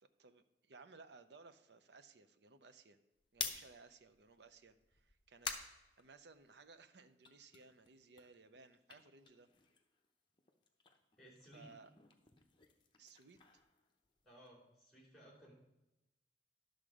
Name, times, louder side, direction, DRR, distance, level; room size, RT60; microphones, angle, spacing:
voice 1, 0.0-3.0 3.3-9.5 11.5-11.9 13.0-13.5, right 4 dB, 70° right, 10 dB, 0.6 m, -61 dB
sound 1, 3.2-6.7 7.1-10.1 10.3-14.5, left 6 dB, 25° left, 0.8 m, -49 dB
voice 2, 11.2-11.7 14.2-15.5, equal, ahead, -2 dB, 3.1 m, -60 dB
10.5 x 6.5 x 4.9 m, 0.96 s
head